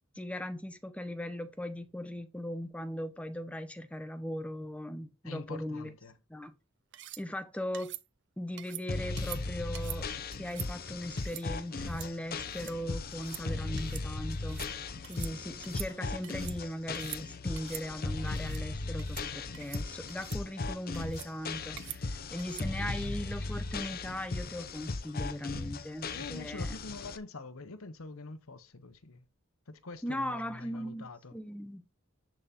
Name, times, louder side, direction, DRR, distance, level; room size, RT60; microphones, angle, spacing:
voice 1, 0.2-5.9 6.3-6.5 7.2-8.0 8.4-10.1 10.4-14.6 15.1-26.8 30.0-31.8, left 1 dB, 5° left, 0.7 m, -39 dB
voice 2, 5.2-6.2 22.8-22.9 26.1-29.2 29.7-31.3, left 3 dB, 75° left, 1.0 m, -45 dB
sound 1, 6.9-7.2 7.7-8.0 8.6-8.8 9.2-9.4 9.7-10.0 10.3-10.7 11.2-11.4 11.8-12.1 12.4-12.7 13.1-13.4 13.8-14.1 14.3-14.7 15.0-15.3 15.6-16.6 16.9-17.2 17.6-17.8 18.3-18.6 19.0-19.3 19.5-19.8 20.1-20.4 20.9-21.3 21.8-22.0 22.4-22.7, right 15 dB, 55° right, 0.6 m, -44 dB
sound 2, 8.9-27.2, left 3 dB, 45° left, 0.7 m, -37 dB
10.5 x 3.8 x 4.3 m
head